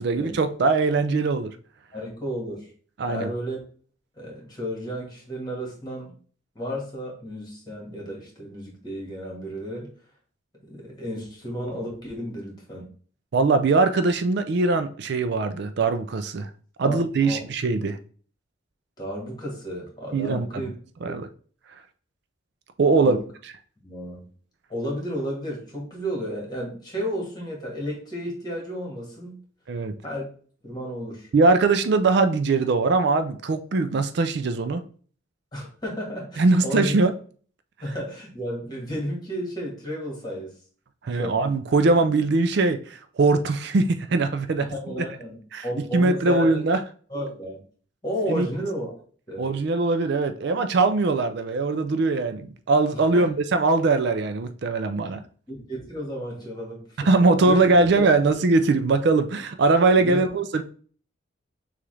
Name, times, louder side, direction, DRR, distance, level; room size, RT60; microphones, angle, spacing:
voice 1, 0.0-1.6 3.0-3.3 13.3-16.5 16.8-18.0 20.1-20.6 21.0-21.3 22.8-23.2 29.7-29.9 31.3-34.8 36.4-37.1 41.0-44.7 45.5-45.6 45.9-46.8 48.3-48.5 49.4-55.2 57.0-60.6, right 3 dB, 55° right, 0.4 m, -21 dB
voice 2, 1.9-2.7 3.0-3.6 4.2-6.1 6.6-9.9 10.7-12.9 16.8-17.4 19.0-20.7 21.0-21.1 23.0-23.2 23.8-24.2 24.7-29.4 30.0-30.2 30.6-31.3 35.5-37.0 37.8-40.5 41.1-41.4 44.6-45.4 45.6-46.6 47.1-47.6 48.0-48.9 49.3-49.5 53.1-53.3 55.5-57.1 57.4-57.7 58.0-58.1 60.0-60.3, equal, 20° left, 1.7 m, -32 dB
6.7 x 2.5 x 3.2 m
head